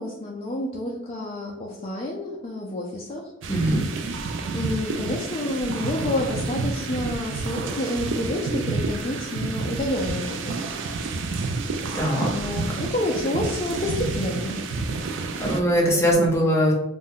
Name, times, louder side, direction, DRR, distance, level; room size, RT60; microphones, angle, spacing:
voice 1, 0.0-3.2 4.5-10.5 12.3-14.6, left 1 dB, 30° left, -2 dB, 0.4 m, -29 dB
sound 1, 3.4-15.6, right 3 dB, 65° right, 0.3 m, -29 dB
voice 2, 11.9-12.3 15.4-16.7, equal, 15° left, -3 dB, 0.7 m, -21 dB
2.5 x 2.2 x 3.5 m, 0.85 s
head